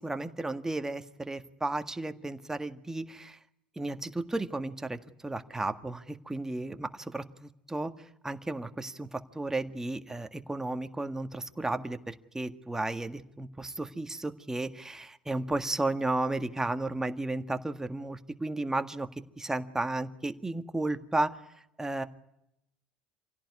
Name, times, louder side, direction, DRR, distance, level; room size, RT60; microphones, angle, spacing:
voice 1, 0.0-3.4 3.8-7.9 8.2-19.1 19.4-21.4 21.8-22.0, right 2 dB, 10° right, 8 dB, 1.8 m, -33 dB
27.5 x 17.0 x 9.7 m, 0.83 s
figure-of-eight pair, 65°, 5 cm